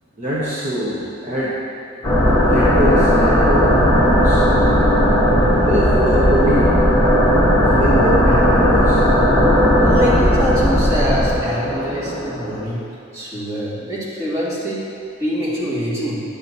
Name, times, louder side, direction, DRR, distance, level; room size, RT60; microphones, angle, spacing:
voice 1, 0.2-1.6 2.4-4.4 5.6-6.7 7.7-9.0, equal, 35° right, -9 dB, 1.1 m, -23 dB
sound 1, 2.0-12.6, equal, 15° left, 1.4 m, -15 dB
voice 2, 9.8-12.8 13.1-14.8 15.2-16.2, equal, 15° right, -9 dB, 2.0 m, -24 dB
10.5 x 7.4 x 2.7 m, 2.6 s
head